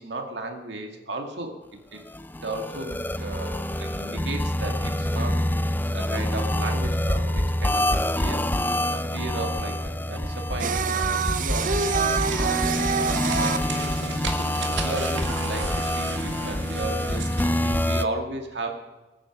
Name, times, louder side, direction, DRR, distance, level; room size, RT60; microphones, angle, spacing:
voice 1, 0.0-1.5 1.9-2.0 2.4-18.7, right 2 dB, 70° right, 3 dB, 2.2 m, -35 dB
sound 1, 2.1-18.0, left 1 dB, 10° left, 0.4 m, -26 dB
Singing, 10.6-15.6, right 6 dB, 45° right, 0.7 m, -27 dB
sound 2, 11.6-17.6, right 3 dB, 85° right, 2.0 m, -35 dB
20.0 x 8.9 x 6.2 m, 1.2 s
head